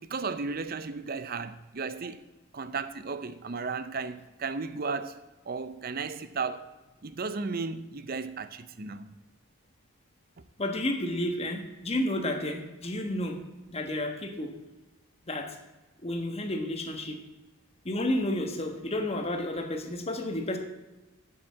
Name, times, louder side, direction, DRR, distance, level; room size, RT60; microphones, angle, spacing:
voice 1, 0.0-2.2 2.5-5.2 5.5-6.7 7.0-9.2, right 4 dB, 45° right, 0.6 m, -34 dB
voice 2, 10.6-13.4 13.7-14.5 15.3-15.5 16.0-17.2 17.8-20.6, left 1 dB, 30° left, 1.3 m, -31 dB
8.1 x 7.8 x 7.4 m
head